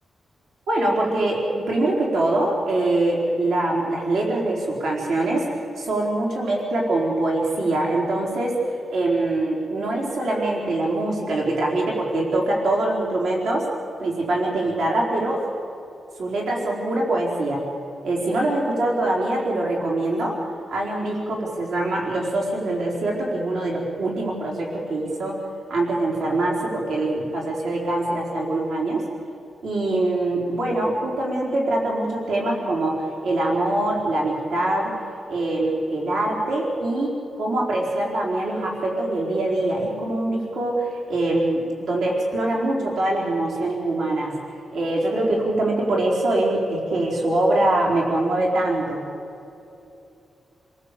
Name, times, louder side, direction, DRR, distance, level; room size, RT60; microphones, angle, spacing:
voice 1, 0.7-13.7 14.0-15.5 16.2-17.7 18.0-20.4 20.7-25.4 25.7-29.1 29.6-34.9 35.3-44.4 44.7-49.0, right 2 dB, 90° right, -2 dB, 4.4 m, -23 dB
29.5 x 19.0 x 8.4 m, 2.8 s
wide cardioid pair, 150°, 0 cm